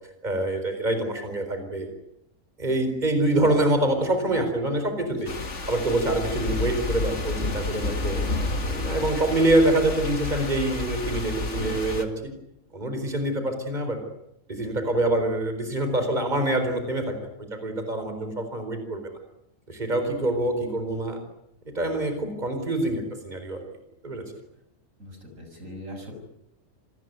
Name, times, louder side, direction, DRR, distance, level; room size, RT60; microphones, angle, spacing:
voice 1, 0.2-1.9 2.6-5.3 5.7-8.2 8.6-12.3 12.7-14.0 14.5-17.2 17.5-19.0 19.7-21.2 21.7-23.6 24.0-24.2, right 1 dB, 35° right, 6 dB, 4.6 m, -25 dB
voice 2, 5.1-5.5 25.0-26.1, equal, 85° right, 5 dB, 6.9 m, -41 dB
sound 1, 5.3-12.1, left 2 dB, 65° left, 2.5 m, -30 dB
27.0 x 20.5 x 9.5 m, 0.80 s
omnidirectional pair, 1.3 m